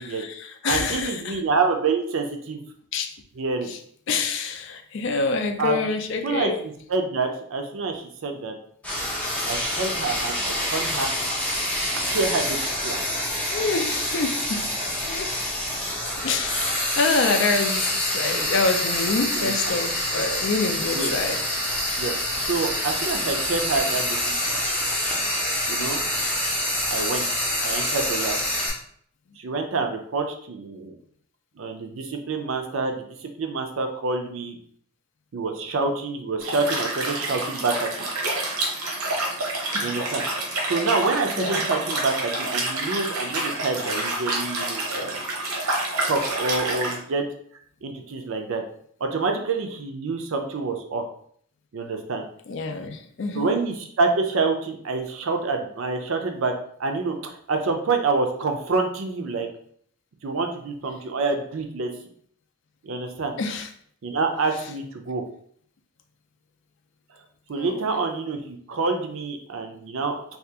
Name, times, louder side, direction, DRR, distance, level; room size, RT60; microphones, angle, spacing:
voice 1, 0.0-1.4 2.9-3.1 3.7-3.8 4.1-6.6 13.5-14.6 15.0-15.3 16.2-21.4 39.7-40.0 41.4-41.6 52.5-53.5 63.4-63.7 67.6-67.8, left 4 dB, 55° left, 6 dB, 0.4 m, -26 dB
voice 2, 0.6-2.6 3.4-3.7 5.6-5.8 6.2-8.6 9.5-11.3 12.1-12.6 12.8-13.0 19.3-19.7 20.9-21.1 22.0-22.2 22.5-24.6 25.7-26.0 26.9-27.3 27.6-28.4 29.4-31.0 31.6-34.6 35.3-38.1 39.8-40.2 40.7-45.2 46.0-47.2 47.8-48.6 49.0-51.1 51.7-52.2 53.3-56.5 56.8-59.5 60.2-61.9 62.8-63.3 64.0-65.2 67.5-70.2, right 3 dB, 60° right, 4 dB, 0.5 m, -27 dB
Frying (food), 8.8-28.7, left 1 dB, 5° left, 0.6 m, -26 dB
Liquid, 36.4-47.0, right 2 dB, 90° right, 0.9 m, -28 dB
2.8 x 2.4 x 3.5 m, 0.62 s
head